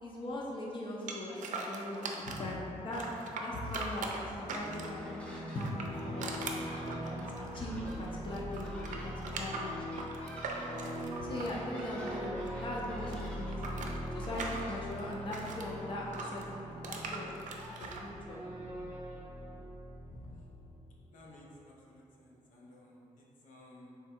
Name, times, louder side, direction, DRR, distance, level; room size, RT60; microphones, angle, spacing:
voice 1, 0.0-3.0 3.4-6.4 7.0-9.7 11.2-13.8 14.1-17.3 17.8-18.4 20.1-20.2, left 1 dB, 40° left, -4 dB, 0.6 m, -40 dB
sound 1, 1.1-2.5 2.9-5.1 5.5-8.1 8.3-12.5 12.8-15.7 16.1-18.0, right 3 dB, 75° right, 0.5 m, -41 dB
sound 2, 4.3-20.9, equal, 20° right, 0.8 m, -42 dB
sound 3, 4.8-5.6 5.9-18.2, equal, 10° left, 0.8 m, -51 dB
voice 2, 21.1-24.0, left 1 dB, 85° left, -3 dB, 0.7 m, -56 dB
3.6 x 3.4 x 4.3 m, 2.9 s
wide cardioid pair, 155°, 13 cm